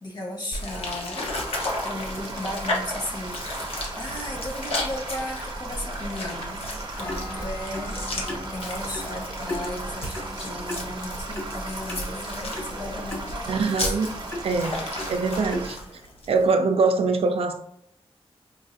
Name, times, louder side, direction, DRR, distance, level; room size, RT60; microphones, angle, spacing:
voice 1, 0.0-3.5 4.0-8.0 8.5-14.0, left 1 dB, 45° left, 1.1 m, -36 dB
sound 1, 0.5-16.5, left 1 dB, 70° left, 0.9 m, -34 dB
sound 2, 1.4-15.7, right 2 dB, 45° right, 0.8 m, -36 dB
sound 3, 7.0-15.9, left 1 dB, 25° left, 0.7 m, -38 dB
voice 2, 13.5-14.1 14.4-14.8 15.1-15.8 16.3-17.6, right 4 dB, 70° right, 0.4 m, -23 dB
4.6 x 2.4 x 2.5 m
wide cardioid pair, 115°, 10 cm